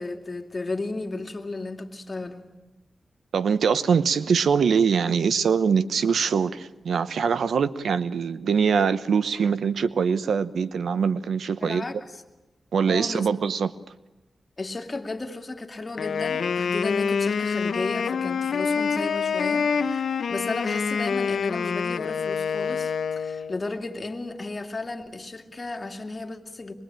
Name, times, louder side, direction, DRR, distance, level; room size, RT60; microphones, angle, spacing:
voice 1, 0.0-2.5 11.6-12.0 12.9-13.3 14.6-26.7, left 2 dB, 35° left, 2.5 m, -34 dB
voice 2, 3.3-11.8 12.7-13.7, right 6 dB, 90° right, 0.9 m, -23 dB
Wind instrument woodwind instrument, 16.0-23.6, left 6 dB, 85° left, 1.0 m, -26 dB
24.5 x 22.0 x 8.9 m
cardioid pair, 65°, 0 cm